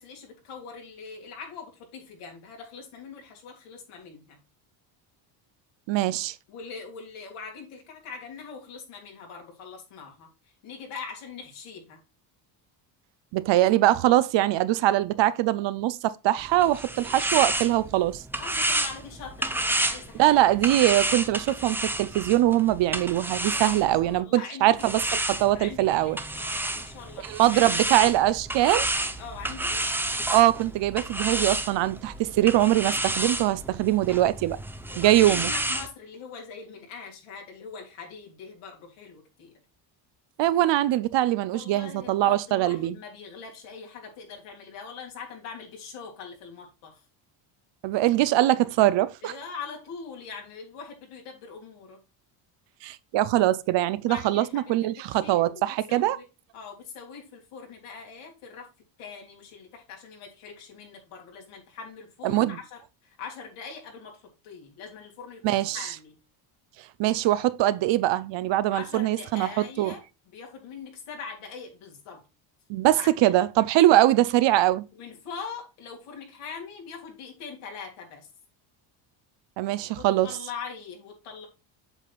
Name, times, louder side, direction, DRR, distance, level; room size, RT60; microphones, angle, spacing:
voice 1, 0.0-4.4 6.5-12.0 18.4-20.4 20.7-21.0 23.4-25.1 25.5-27.8 29.2-29.9 32.3-32.4 34.9-39.5 41.5-47.0 49.2-52.0 54.1-56.3 56.5-58.7 59.0-66.2 68.7-70.0 70.3-72.2 72.9-73.4 74.9-78.3 79.9-81.5, left 5 dB, 75° left, 3.2 m, -42 dB
voice 2, 5.9-6.3 13.3-18.2 20.2-25.0 25.4-26.2 27.3-28.9 30.3-34.6 35.0-35.5 40.4-42.9 47.8-49.3 52.8-56.2 62.2-62.6 65.4-65.8 67.0-69.9 72.7-74.9 79.6-80.3, right 14 dB, 60° right, 0.7 m, -22 dB
sound 1, 16.4-24.2 24.8-35.9, right 1 dB, 5° right, 0.7 m, -30 dB
8.1 x 5.9 x 2.4 m
cardioid pair, 100°, 50 cm